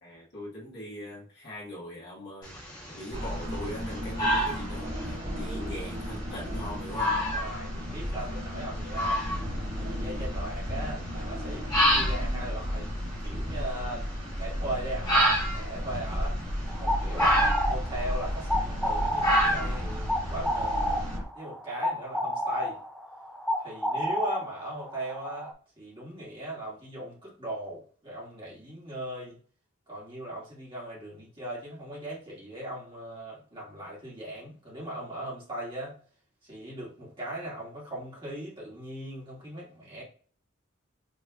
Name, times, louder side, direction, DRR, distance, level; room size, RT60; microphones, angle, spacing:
voice 1, 0.0-2.5 2.9-7.2, left 1 dB, 55° left, 1.8 m, -40 dB
sound 1, 2.4-21.1, equal, 20° left, 1.8 m, -31 dB
sound 2, 3.1-21.2, equal, 45° right, 1.8 m, -34 dB
voice 2, 7.2-9.3 9.8-12.9 13.2-16.4 16.8-21.0 21.4-22.8 23.6-29.4 29.9-36.0 36.4-40.0, right 1 dB, 25° right, 1.8 m, -39 dB
sound 3, 16.7-25.5, equal, ahead, 0.3 m, -30 dB
5.2 x 3.2 x 2.4 m
head